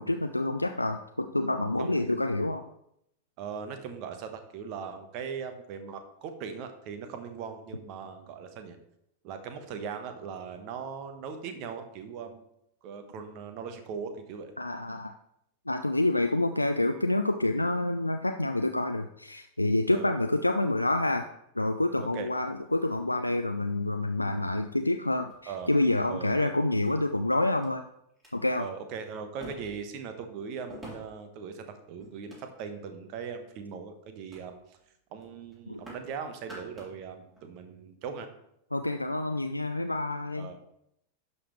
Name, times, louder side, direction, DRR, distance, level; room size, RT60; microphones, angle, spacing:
voice 1, 0.0-2.6 14.6-15.1 15.7-21.3 21.6-27.8 28.3-28.7 35.7-35.8 38.7-40.5, left 2 dB, 85° left, 6 dB, 0.3 m, -28 dB
voice 2, 3.4-8.8 9.2-12.4 12.8-14.5 19.9-20.1 22.1-22.3 25.5-25.7 26.1-26.5 28.6-34.8 35.1-38.3 40.4-40.6, right 6 dB, 45° right, 8 dB, 1.1 m, -39 dB
sound 1, 22.6-23.7 24.6-24.7 25.3-25.9 26.8-26.9 27.6-27.7 28.1-28.3 29.4-29.9 30.7-31.3 32.0-32.8 33.4-33.7 34.3-34.5 34.8-35.0 35.2-36.1 36.4-37.0 37.3-37.5, equal, 15° right, 3.5 m, -48 dB
11.0 x 5.5 x 3.1 m, 0.77 s
figure-of-eight pair, 90°, 0 cm